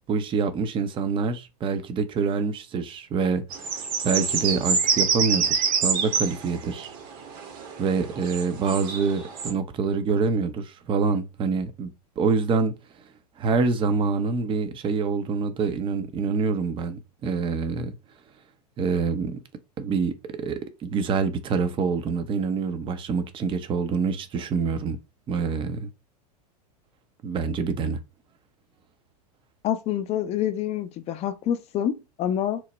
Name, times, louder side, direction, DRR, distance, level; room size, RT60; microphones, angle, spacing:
voice 1, 0.1-6.9 7.8-11.9 12.2-12.7 13.4-17.9 18.8-19.4 19.8-20.1 20.4-25.0 25.3-25.9 27.2-28.0, right 5 dB, 25° right, 0.5 m, -26 dB
sound 1, 3.5-9.5, right 6 dB, 45° right, 0.9 m, -27 dB
voice 2, 29.6-32.6, left 10 dB, 30° left, 0.5 m, -27 dB
3.0 x 2.1 x 3.9 m
hypercardioid pair, 100°, 21 cm